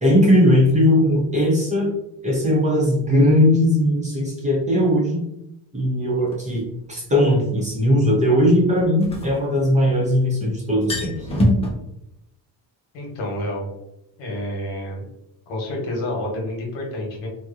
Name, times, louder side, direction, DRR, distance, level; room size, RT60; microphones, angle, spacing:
voice 1, 0.0-1.9 2.2-5.2 5.7-11.3, equal, 15° right, -3 dB, 0.8 m, -18 dB
sound 1, 6.3-6.4 8.8-10.1 10.4-10.5 10.7-11.7, left 1 dB, 15° left, 0.3 m, -23 dB
voice 2, 12.9-13.7 14.2-15.0 15.5-17.3, left 1 dB, 85° left, -1 dB, 1.1 m, -29 dB
2.8 x 2.2 x 2.4 m, 0.84 s
cardioid pair, 125°, 44 cm